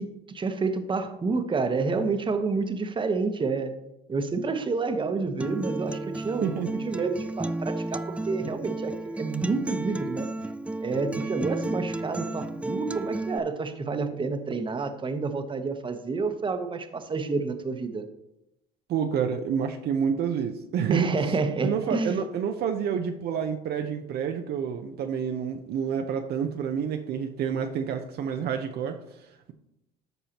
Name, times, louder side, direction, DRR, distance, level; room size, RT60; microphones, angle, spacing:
voice 1, 0.0-3.7 4.1-10.3 10.8-18.0 20.9-22.2, right 4 dB, 25° right, 8 dB, 1.0 m, -29 dB
Acoustic guitar, 5.4-13.4, right 2 dB, 5° right, 0.4 m, -33 dB
voice 2, 6.4-6.7 18.9-21.1 21.6-29.0, right 7 dB, 60° right, 5 dB, 0.7 m, -28 dB
13.5 x 5.5 x 3.0 m, 0.86 s
supercardioid pair, 75°, 19 cm